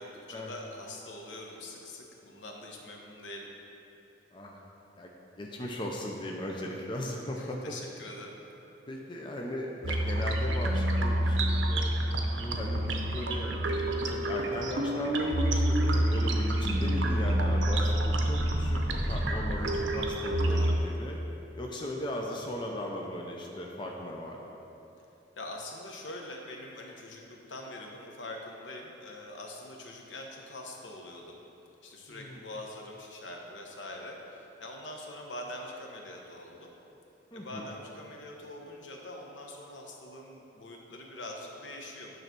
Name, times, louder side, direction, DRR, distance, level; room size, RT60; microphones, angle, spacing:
voice 1, 0.0-3.5 7.4-8.3 16.2-16.5 20.5-20.9 25.4-31.4 31.8-36.7 37.3-42.1, left 1 dB, 75° left, 0 dB, 0.9 m, -44 dB
voice 2, 4.3-4.6 5.0-5.1 5.4-7.7 8.9-11.9 12.3-21.2 21.6-24.4 32.1-32.4 37.3-37.7, left 1 dB, 25° left, -1 dB, 0.5 m, -37 dB
sound 1, 9.8-20.8, right 1 dB, 80° right, 0.6 m, -28 dB
sound 2, 15.2-20.6, equal, 25° right, 1.3 m, -39 dB
9.1 x 3.2 x 6.0 m, 2.9 s
head